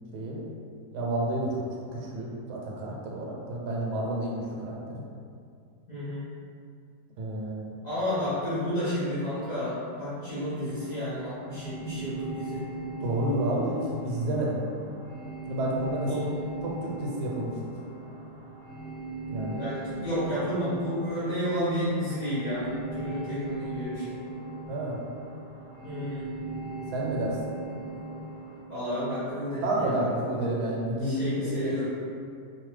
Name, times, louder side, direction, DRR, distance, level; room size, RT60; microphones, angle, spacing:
voice 1, 0.1-0.4 0.9-5.1 7.2-7.7 13.0-14.6 15.4-16.3 16.6-17.8 19.3-19.7 24.7-25.0 26.9-27.6 29.6-31.9, right 1 dB, 80° right, -3 dB, 1.1 m, -30 dB
voice 2, 5.9-6.3 7.8-12.7 16.0-16.3 19.6-24.1 25.8-26.3 28.7-30.6 31.0-31.9, equal, 45° left, -13 dB, 0.5 m, -31 dB
sound 1, 10.7-28.6, right 3 dB, 25° right, 0.6 m, -39 dB
2.9 x 2.1 x 3.1 m, 2.3 s
omnidirectional pair, 1.7 m